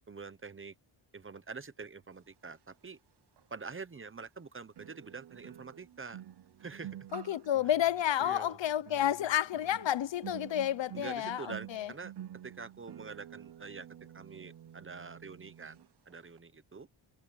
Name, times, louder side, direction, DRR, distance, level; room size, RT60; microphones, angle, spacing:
voice 1, 0.1-0.7 1.1-3.0 3.5-6.2 6.6-7.1 8.2-8.6 10.9-12.1 12.4-13.9 14.1-16.9, right 4 dB, 25° right, 0.9 m, -46 dB
sound 1, 3.4-3.5 4.8-16.4, right 11 dB, 55° right, 0.7 m, -49 dB
voice 2, 7.1-11.9, left 11 dB, 65° left, 0.7 m, -30 dB
wide cardioid pair, 155°, 49 cm